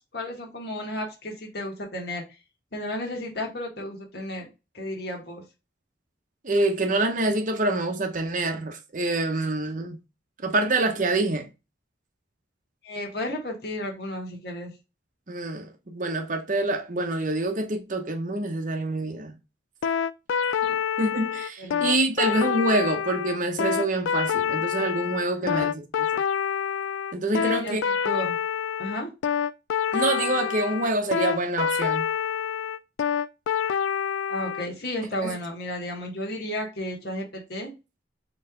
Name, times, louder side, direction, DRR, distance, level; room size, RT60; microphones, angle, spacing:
voice 1, 0.1-2.2 2.7-4.5 4.7-5.4 12.8-14.7 20.6-20.7 21.6-21.9 25.2-25.7 27.3-28.4 28.8-29.1 34.3-37.7, left 1 dB, 55° left, 1.6 m, -33 dB
voice 2, 6.4-10.0 10.4-11.5 15.3-19.4 21.0-26.2 27.1-27.8 29.9-32.0 35.2-35.4, right 2 dB, 40° right, 0.8 m, -26 dB
sound 1, 19.8-34.7, left 8 dB, 85° left, 0.3 m, -27 dB
4.3 x 3.2 x 3.8 m
head